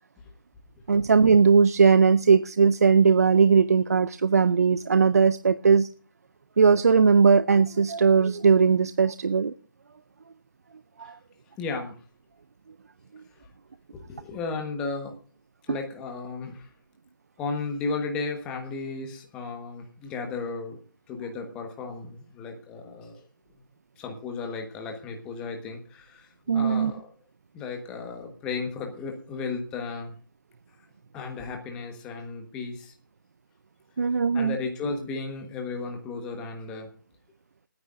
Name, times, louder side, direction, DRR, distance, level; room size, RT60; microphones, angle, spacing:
voice 1, 0.9-5.9 6.6-9.5 11.0-11.2 26.5-26.9 34.0-34.6, right 5 dB, 45° right, 0.5 m, -19 dB
voice 2, 11.6-11.9 13.9-15.1 15.7-16.7 17.4-20.8 21.1-23.3 24.0-27.1 27.5-30.1 31.1-32.9 34.3-36.9, left 4 dB, 10° left, 1.2 m, -34 dB
28.0 x 9.6 x 2.5 m
hypercardioid pair, 175°, 12 cm